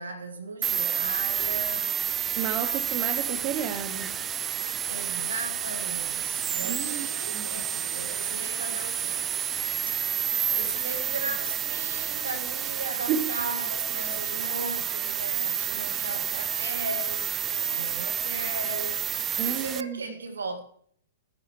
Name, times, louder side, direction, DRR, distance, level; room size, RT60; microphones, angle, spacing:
voice 1, 0.0-1.9 4.9-9.3 9.9-10.0 10.5-19.1 19.5-20.6, right 3 dB, 80° right, 1.8 m, -37 dB
sound 1, 0.6-19.8, right 9 dB, 20° right, 0.4 m, -30 dB
voice 2, 2.3-4.1 6.6-7.5 13.1-13.3 19.4-20.1, right 8 dB, 40° right, 0.9 m, -32 dB
17.5 x 9.6 x 3.1 m
figure-of-eight pair, 110°, 0 cm